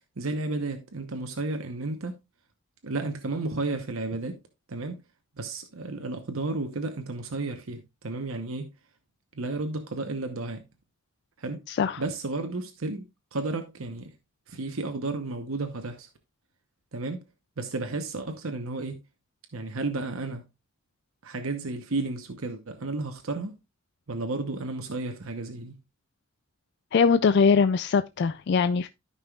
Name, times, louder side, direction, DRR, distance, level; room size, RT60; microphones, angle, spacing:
voice 1, 0.2-2.1 2.8-4.4 4.7-5.0 5.4-8.7 9.3-10.6 11.4-11.6 12.0-13.0 13.3-14.1 14.5-16.1 16.9-17.2 17.6-19.0 19.5-20.4 21.2-23.5 24.1-25.8, right 3 dB, 75° right, 1.0 m, -32 dB
voice 2, 11.7-12.0 26.9-28.9, left 5 dB, 55° left, 0.3 m, -22 dB
13.5 x 5.5 x 2.4 m
head